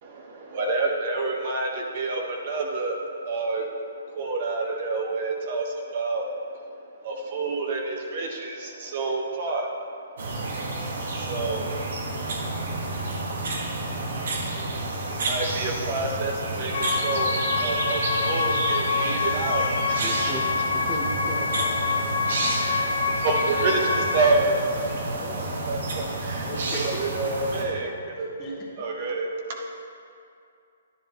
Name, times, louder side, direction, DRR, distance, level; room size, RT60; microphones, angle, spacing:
voice 1, 0.0-10.0 10.5-10.6 10.9-11.9 12.5-13.1 14.7-20.0 22.5-22.8 23.2-25.1 25.3-28.3 28.8-29.6, right 3 dB, 45° right, 0 dB, 1.3 m, -29 dB
sound 1, 10.2-27.6, right 2 dB, 70° right, 1.8 m, -30 dB
sound 2, 16.7-24.3, left 5 dB, 65° left, 0.9 m, -26 dB
voice 2, 20.0-20.5 20.7-22.1 22.4-22.7 23.6-24.0 25.0-25.5 26.4-26.5, right 1 dB, 15° right, -5 dB, 1.0 m, -38 dB
voice 3, 26.4-27.0 28.4-28.9, left 1 dB, 25° left, -2 dB, 1.5 m, -36 dB
11.0 x 10.5 x 3.1 m, 2.5 s
hypercardioid pair, 165°, 0 cm